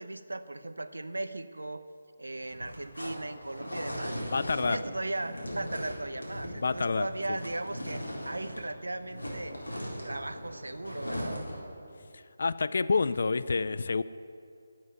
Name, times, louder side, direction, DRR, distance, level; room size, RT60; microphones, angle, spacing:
voice 1, 0.0-1.8 2.2-4.2 4.7-9.6 10.0-11.4, right 2 dB, 85° right, 11 dB, 0.8 m, -37 dB
sound 1, 2.4-8.7 9.0-11.7, equal, 85° left, 3.9 m, -39 dB
voice 2, 4.3-4.8 6.6-7.4 12.4-14.0, left 4 dB, 60° left, 15 dB, 0.4 m, -28 dB
12.0 x 7.4 x 9.1 m, 2.4 s
figure-of-eight pair, 155°, 0 cm